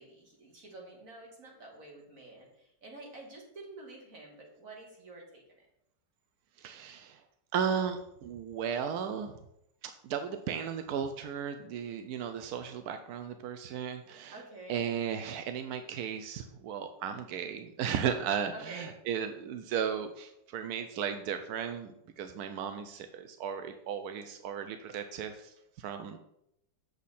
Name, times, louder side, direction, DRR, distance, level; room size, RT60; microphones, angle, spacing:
voice 1, 0.0-5.7 14.3-14.9 18.5-18.9, right 2 dB, 45° right, -1 dB, 2.3 m, -49 dB
voice 2, 6.6-7.2 7.5-9.4 9.8-14.4 14.7-26.2, right 7 dB, 70° right, 8 dB, 0.9 m, -35 dB
8.3 x 6.5 x 4.2 m, 0.79 s
omnidirectional pair, 2.1 m